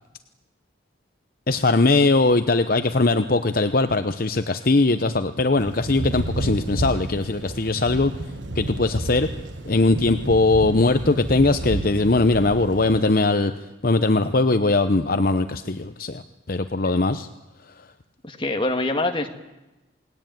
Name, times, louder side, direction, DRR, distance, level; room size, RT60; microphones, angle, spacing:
voice 1, 1.5-8.1 8.6-9.3 9.6-13.5 13.8-16.2 16.5-17.3, left 2 dB, 50° left, 9 dB, 0.8 m, -20 dB
Thunder / Rain, 5.6-13.0, right 1 dB, 75° right, 1.5 m, -31 dB
voice 2, 18.2-19.3, left 2 dB, 25° left, 5 dB, 1.9 m, -24 dB
28.5 x 19.5 x 9.3 m, 1.0 s
head